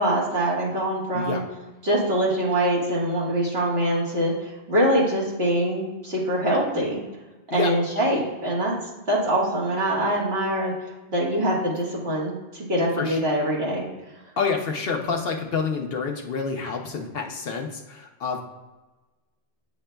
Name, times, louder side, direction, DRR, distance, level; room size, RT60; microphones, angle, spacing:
voice 1, 0.0-1.4 1.8-7.0 7.5-8.7 9.1-10.7 11.1-13.9, right 1 dB, 60° right, -4 dB, 1.8 m, -24 dB
voice 2, 14.4-18.4, left 5 dB, 60° left, 2 dB, 0.8 m, -28 dB
8.8 x 5.7 x 2.2 m, 1.2 s
omnidirectional pair, 1.2 m